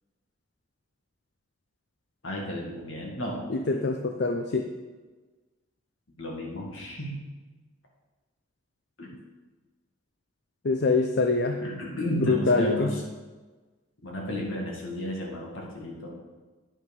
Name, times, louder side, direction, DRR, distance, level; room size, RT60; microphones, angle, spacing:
voice 1, 2.2-3.5 6.2-7.2 9.0-9.1 11.6-13.0 14.0-16.1, equal, 70° left, -1 dB, 2.1 m, -33 dB
voice 2, 3.5-4.7 10.6-11.6 12.2-12.9, left 3 dB, 55° left, 4 dB, 0.5 m, -24 dB
9.4 x 5.7 x 5.4 m, 1.3 s
head